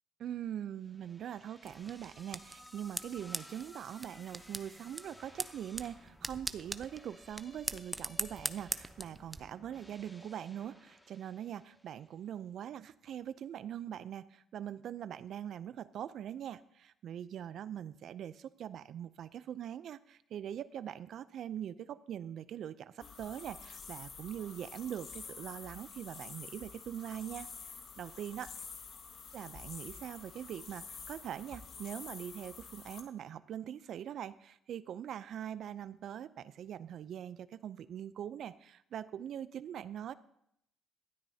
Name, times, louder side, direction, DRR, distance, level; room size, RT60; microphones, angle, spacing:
voice 1, 0.2-28.5 29.3-40.1, right 10 dB, 65° right, 16 dB, 0.5 m, -42 dB
sound 1, 0.8-12.1, left 1 dB, 10° left, 1.9 m, -57 dB
sound 2, 1.6-9.4, right 2 dB, 15° right, 0.6 m, -42 dB
sound 3, 23.0-33.0, left 5 dB, 60° left, 1.7 m, -49 dB
18.0 x 12.5 x 2.8 m, 0.75 s
supercardioid pair, 80°, 0 cm